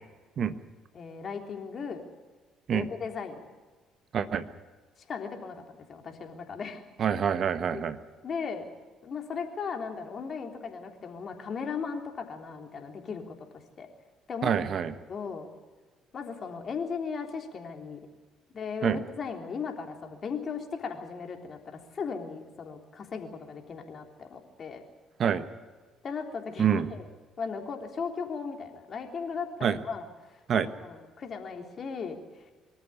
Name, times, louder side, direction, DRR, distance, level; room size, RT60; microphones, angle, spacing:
voice 1, 0.9-2.0 2.7-3.4 5.1-6.8 7.7-7.8 8.2-8.6 9.0-13.9 14.3-14.5 15.1-15.5 16.1-18.0 18.5-24.8 26.0-27.0 27.4-32.5, left 5 dB, 50° left, 4 dB, 3.3 m, -37 dB
voice 2, 4.1-4.4 7.0-8.0 14.4-14.9 18.8-19.0 25.2-25.4 26.6-26.9 29.6-29.8 30.5-30.7, right 8 dB, 55° right, 12 dB, 1.3 m, -26 dB
24.0 x 13.5 x 9.9 m, 1.4 s
hypercardioid pair, 55°, 0 cm